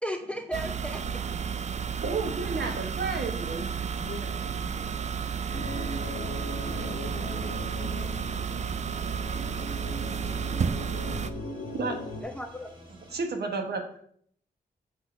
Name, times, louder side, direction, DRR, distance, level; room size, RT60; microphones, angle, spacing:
voice 1, 0.0-1.2 10.2-10.9 12.2-12.7, equal, 5° left, 4 dB, 0.7 m, -37 dB
sound 1, 0.5-11.3, right 7 dB, 40° right, 0.4 m, -32 dB
voice 2, 2.0-3.7 11.7-12.0 13.1-13.8, right 4 dB, 70° right, 4 dB, 1.3 m, -33 dB
sound 2, 2.4-13.2, equal, 25° right, 1.9 m, -52 dB
voice 3, 3.8-5.0 6.7-8.0, left 3 dB, 30° left, -3 dB, 1.1 m, -45 dB
sound 3, 5.5-12.2, left 1 dB, 65° left, 1.7 m, -39 dB
6.3 x 3.9 x 5.8 m, 0.64 s
cardioid pair, 85°, 17 cm